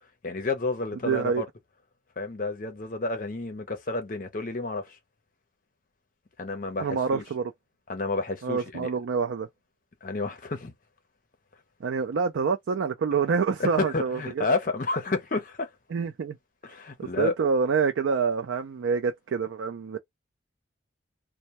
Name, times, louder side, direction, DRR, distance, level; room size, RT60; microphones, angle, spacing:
voice 1, 0.2-1.5 2.2-5.0 6.4-7.2 7.9-8.9 10.0-10.7 13.6-15.7 16.6-17.3, left 3 dB, 45° left, 0.5 m, -30 dB
voice 2, 1.0-1.4 6.8-7.5 8.4-9.5 11.8-14.6 15.9-16.4 17.0-20.0, right 5 dB, 85° right, 0.4 m, -27 dB
2.1 x 2.1 x 2.8 m
head